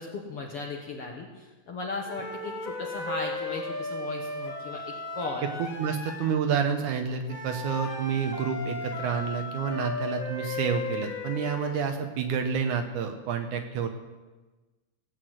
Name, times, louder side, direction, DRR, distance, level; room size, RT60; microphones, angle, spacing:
voice 1, 0.0-5.5, left 3 dB, 55° left, 0 dB, 1.7 m, -37 dB
sound 1, 2.1-6.4 7.3-11.9, left 2 dB, 35° left, 1.4 m, -35 dB
voice 2, 5.6-13.9, right 6 dB, 70° right, 6 dB, 2.2 m, -29 dB
17.0 x 8.3 x 7.9 m, 1.2 s
omnidirectional pair, 4.1 m